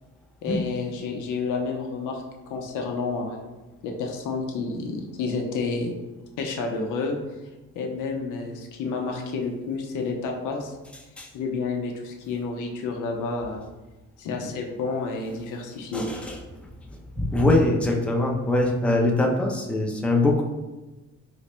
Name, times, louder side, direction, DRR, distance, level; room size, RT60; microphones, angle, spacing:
voice 1, 0.4-3.4 3.8-6.0 6.4-7.2 7.7-10.7 11.3-13.6 14.2-16.0, left 4 dB, 85° left, 2 dB, 0.7 m, -30 dB
voice 2, 15.9-16.4 16.9-20.4, left 2 dB, 5° left, -1 dB, 0.6 m, -23 dB
3.1 x 2.9 x 3.2 m, 1.1 s
cardioid pair, 90°, 30 cm